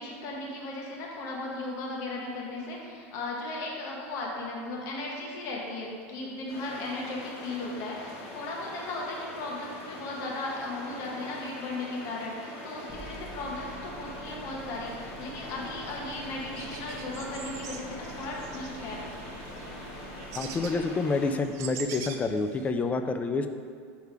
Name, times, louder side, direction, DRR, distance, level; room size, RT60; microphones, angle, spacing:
voice 1, 0.0-19.0, left 2 dB, 50° left, -2 dB, 1.2 m, -36 dB
sound 1, 6.5-21.3, left 1 dB, 85° left, 1.5 m, -43 dB
sound 2, 12.9-20.9, equal, 5° right, 1.2 m, -47 dB
sound 3, 16.1-16.2 16.4-22.7, right 7 dB, 50° right, 0.5 m, -44 dB
voice 2, 20.4-23.5, left 3 dB, 20° left, 7 dB, 0.4 m, -28 dB
6.5 x 3.4 x 4.7 m, 2.1 s
supercardioid pair, 125°, 7 cm